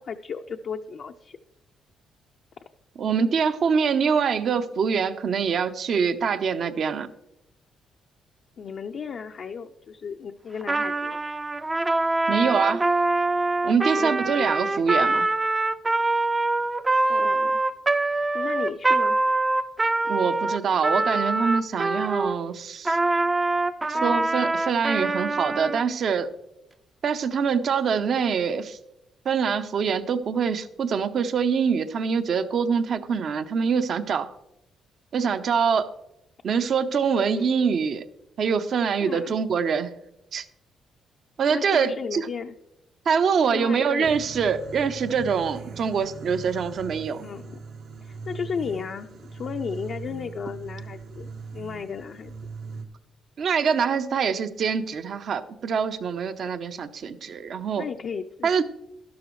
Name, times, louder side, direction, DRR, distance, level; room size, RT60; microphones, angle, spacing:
voice 1, 0.0-1.4 8.6-11.2 13.9-14.8 17.1-17.6 18.3-19.2 23.9-24.3 37.3-37.5 39.0-39.4 41.5-42.5 43.5-44.1 44.4-44.6 47.2-47.7 48.0-52.3 57.7-58.5, left 6 dB, 55° left, 4 dB, 0.5 m, -35 dB
voice 2, 3.0-7.1 12.3-12.9 13.6-15.3 20.1-23.0 23.9-26.3 27.0-28.8 29.2-34.3 35.1-35.9 36.4-38.0 38.4-39.9 40.3-40.4 41.4-42.2 43.1-47.3 53.4-57.9 58.4-58.6, right 6 dB, 60° right, 11 dB, 0.7 m, -24 dB
Trumpet, 10.6-22.4 22.8-25.8, right 2 dB, 20° right, 0.4 m, -24 dB
sound 1, 44.0-52.8, right 4 dB, 85° right, 1.5 m, -40 dB
12.0 x 12.0 x 3.1 m, 0.87 s
cardioid pair, 90°, 0 cm